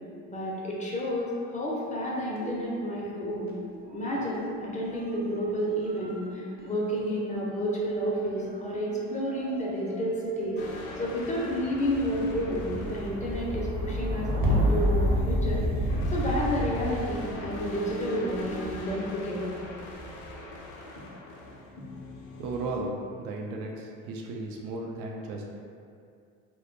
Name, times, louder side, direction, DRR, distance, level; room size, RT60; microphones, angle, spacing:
voice 1, 0.3-3.5 3.9-10.6 11.0-19.6 21.8-21.9, equal, 20° left, -4 dB, 0.4 m, -30 dB
sound 1, 2.3-3.7 3.9-19.0 19.7-20.3, equal, 25° right, 0.6 m, -32 dB
sound 2, 10.6-22.8, left 2 dB, 70° left, 0.6 m, -42 dB
voice 2, 22.4-22.9 23.2-25.5, right 2 dB, 75° right, 0 dB, 0.5 m, -35 dB
2.1 x 2.1 x 2.9 m, 2.3 s
supercardioid pair, 75°, 36 cm